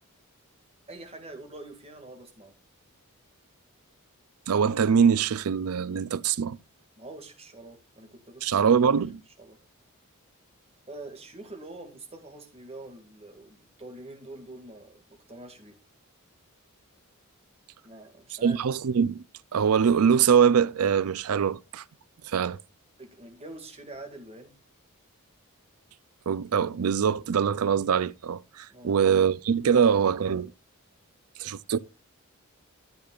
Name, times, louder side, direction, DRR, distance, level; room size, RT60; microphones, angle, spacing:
voice 1, 0.9-2.5 7.0-8.7 9.4-9.6 10.9-15.8 17.8-18.6 23.0-24.6 28.7-29.2 29.7-30.4, right 2 dB, 30° right, 2.0 m, -45 dB
voice 2, 4.5-6.6 8.4-9.2 18.4-19.2 19.5-21.8 22.2-22.6 26.3-30.5 31.4-31.8, right 7 dB, 85° right, 0.5 m, -23 dB
13.5 x 8.6 x 2.4 m
head